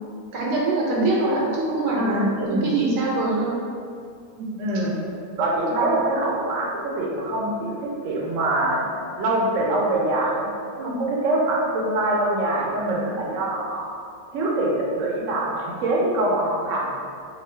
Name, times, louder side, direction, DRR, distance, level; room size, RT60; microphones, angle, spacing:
voice 1, 0.3-3.5 4.3-4.5 10.8-11.0, right 2 dB, 85° right, -4 dB, 1.3 m, -24 dB
voice 2, 1.9-2.7 4.6-4.9 5.4-8.9 9.2-13.9 14.3-16.9, right 1 dB, 65° right, -4 dB, 0.9 m, -24 dB
3.7 x 2.3 x 3.3 m, 2.3 s
omnidirectional pair, 1.7 m